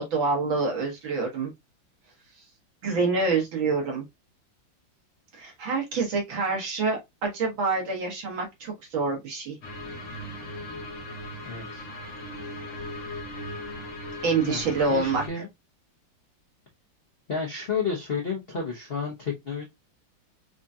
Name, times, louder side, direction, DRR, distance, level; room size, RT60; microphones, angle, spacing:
voice 1, 0.0-1.5 2.8-4.0 5.3-9.6 14.2-15.2, right 4 dB, 85° right, 2.3 m, -26 dB
sound 1, 9.6-15.3, left 1 dB, 45° left, 1.2 m, -38 dB
voice 2, 11.5-11.9 14.4-15.5 17.3-19.6, left 5 dB, 65° left, 0.5 m, -31 dB
4.9 x 2.7 x 2.3 m
omnidirectional pair, 2.1 m